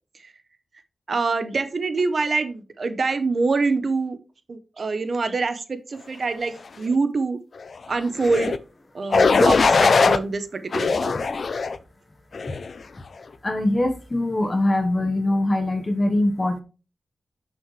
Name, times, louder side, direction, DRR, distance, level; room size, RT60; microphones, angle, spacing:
voice 1, 1.1-4.2 4.5-7.4 7.9-8.5 8.9-11.1, right 3 dB, 50° right, 0.9 m, -25 dB
sound 1, 8.2-8.6 9.1-10.2 10.7-11.8 12.3-12.7, left 4 dB, 55° left, 0.5 m, -19 dB
voice 2, 13.4-16.6, left 1 dB, 25° left, 1.2 m, -22 dB
9.6 x 6.2 x 3.2 m
wide cardioid pair, 135°, 0 cm